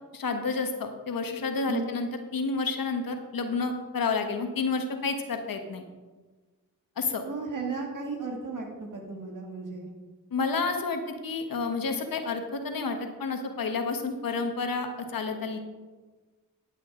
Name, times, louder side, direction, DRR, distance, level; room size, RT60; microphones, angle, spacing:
voice 1, 0.1-5.8 7.0-7.2 10.3-15.6, left 4 dB, 75° left, 6 dB, 1.3 m, -30 dB
voice 2, 7.2-9.9, right 3 dB, 65° right, 1 dB, 2.4 m, -35 dB
12.0 x 8.6 x 3.8 m, 1.3 s
cardioid pair, 45°, 34 cm